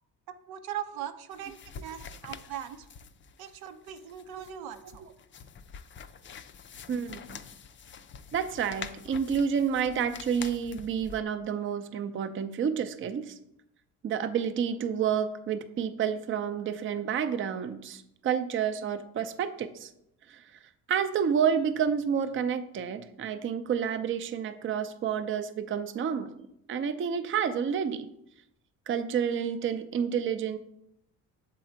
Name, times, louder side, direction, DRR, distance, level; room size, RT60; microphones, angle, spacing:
voice 1, 0.5-2.9 3.4-5.0, right 10 dB, 85° right, 8 dB, 0.7 m, -40 dB
sound 1, 1.3-11.2, left 6 dB, 35° left, 0.4 m, -46 dB
voice 2, 6.9-7.4 8.3-13.3 14.0-19.9 20.3-20.4 20.9-26.3 26.7-28.1 28.9-30.6, right 7 dB, 35° right, 10 dB, 0.5 m, -29 dB
7.4 x 3.8 x 4.4 m, 0.79 s
cardioid pair, 95°, 36 cm